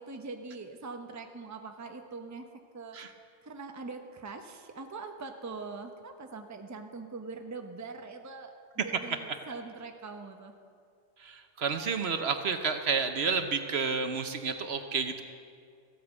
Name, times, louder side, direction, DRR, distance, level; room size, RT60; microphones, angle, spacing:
voice 1, 0.0-2.4 2.7-3.0 3.4-10.5, right 4 dB, 15° right, 5 dB, 0.7 m, -42 dB
voice 2, 11.2-15.2, right 5 dB, 60° right, 7 dB, 1.0 m, -30 dB
14.5 x 8.5 x 8.1 m, 2.3 s
omnidirectional pair, 1.3 m